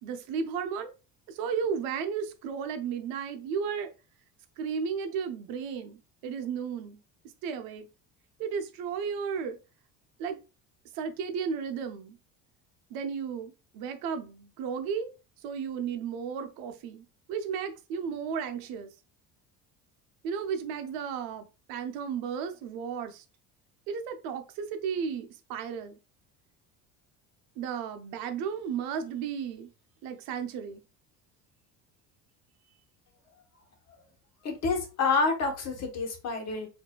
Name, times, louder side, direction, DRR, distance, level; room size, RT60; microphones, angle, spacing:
voice 1, 0.0-0.9 1.3-3.9 4.6-6.0 6.2-7.0 7.4-7.9 8.4-9.6 10.2-10.4 10.9-12.2 12.9-15.1 15.4-18.9 20.2-23.2 23.9-26.0 27.6-29.7 30.0-30.8, right 6 dB, 80° right, 0.7 m, -34 dB
voice 2, 34.4-36.7, left 4 dB, 45° left, 1.2 m, -28 dB
4.7 x 2.7 x 2.2 m
cardioid pair, 110°, 36 cm